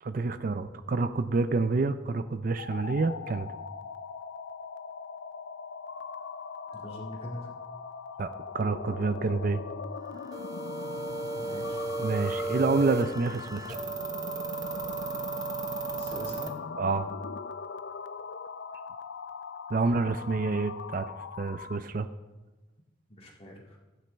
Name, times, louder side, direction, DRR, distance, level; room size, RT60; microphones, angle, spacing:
voice 1, 0.0-3.5 6.7-6.8 8.2-9.6 10.1-10.3 12.0-13.8 16.8-17.1 19.7-21.1 21.4-22.1, right 3 dB, 45° right, 11 dB, 0.4 m, -28 dB
sound 1, 2.5-21.9, left 5 dB, 70° left, 0.4 m, -40 dB
voice 2, 6.7-7.5 11.4-11.8 16.0-16.5 23.2-23.8, equal, 30° left, -1 dB, 2.0 m, -42 dB
sound 2, 10.3-16.5, right 4 dB, 20° right, 0.8 m, -35 dB
16.0 x 9.2 x 3.4 m, 1.1 s
head